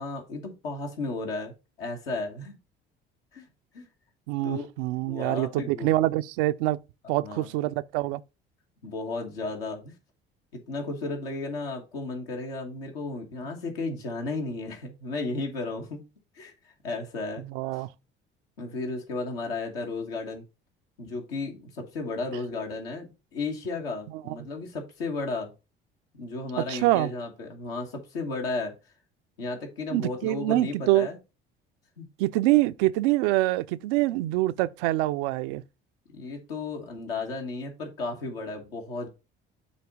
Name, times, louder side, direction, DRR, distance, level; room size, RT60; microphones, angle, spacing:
voice 1, 0.0-1.5 1.8-2.6 3.3-3.4 3.7-3.9 4.4-4.7 5.1-5.9 7.2-7.5 8.8-9.9 10.5-16.0 16.3-17.4 17.7-17.8 18.6-20.4 21.0-25.5 26.1-28.7 29.4-31.2 32.0-32.1 36.1-39.1, left 3 dB, 80° left, 1.4 m, -34 dB
voice 2, 4.3-6.8 7.1-8.2 17.5-17.9 24.3-24.4 26.6-27.1 29.9-31.1 32.2-35.6, right 17 dB, 70° right, 0.4 m, -25 dB
7.1 x 2.7 x 4.8 m
hypercardioid pair, 60°, 29 cm